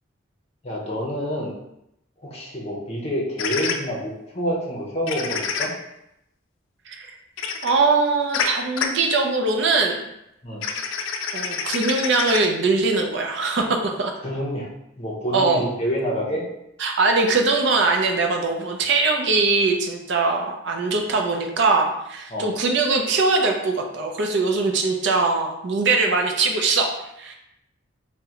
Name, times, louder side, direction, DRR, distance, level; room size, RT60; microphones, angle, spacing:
voice 1, 0.6-1.5 2.2-5.7 10.4-10.6 14.2-14.7 15.0-16.4 22.3-22.5, equal, 30° left, -3 dB, 0.6 m, -27 dB
sound 1, 3.4-3.7 5.1-5.7 7.4-7.7 8.3-8.4 8.8-8.9 10.6-12.5, left 6 dB, 85° left, 0.4 m, -26 dB
voice 2, 7.6-10.0 11.3-14.1 15.3-15.6 16.8-26.9 27.2-27.4, right 3 dB, 60° right, 2 dB, 0.5 m, -21 dB
3.6 x 2.1 x 2.9 m, 0.82 s
head